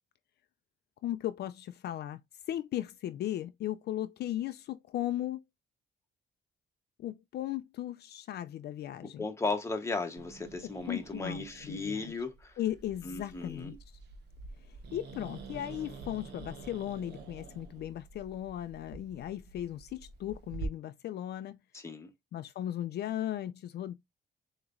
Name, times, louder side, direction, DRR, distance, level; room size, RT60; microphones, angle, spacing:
voice 1, 1.0-2.2 2.5-5.4 7.0-9.2 10.6-12.1 12.6-13.7 14.6-21.6 22.3-23.9, left 12 dB, 65° left, 0.4 m, -37 dB
voice 2, 9.0-12.5 13.0-13.7 21.7-22.1, left 3 dB, 15° left, 0.9 m, -36 dB
Growling, 10.2-20.7, right 4 dB, 65° right, 1.0 m, -48 dB
7.1 x 2.9 x 2.5 m
cardioid pair, 160°, 18 cm